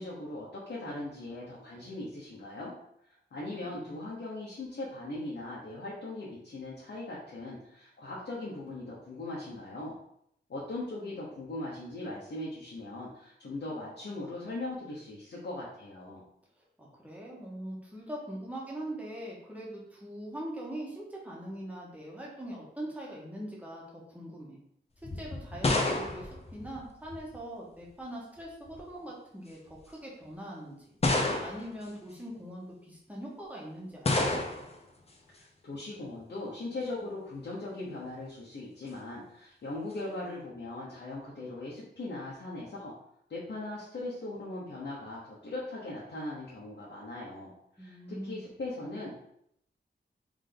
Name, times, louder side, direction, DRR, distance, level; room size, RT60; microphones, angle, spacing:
voice 1, 0.0-2.7 3.3-9.9 10.5-16.2 35.4-42.9 43.3-49.1, left 2 dB, 65° left, -6 dB, 1.1 m, -39 dB
voice 2, 3.5-3.9 16.8-24.6 25.1-30.9 31.4-34.6 47.8-48.4, right 1 dB, 5° right, -4 dB, 1.3 m, -42 dB
sound 1, 25.0-27.4 28.4-28.9 29.7-29.8 31.0-31.8 34.0-34.8, left 2 dB, 35° left, 0.6 m, -29 dB
3.6 x 3.5 x 3.9 m, 0.73 s
wide cardioid pair, 135°, 19 cm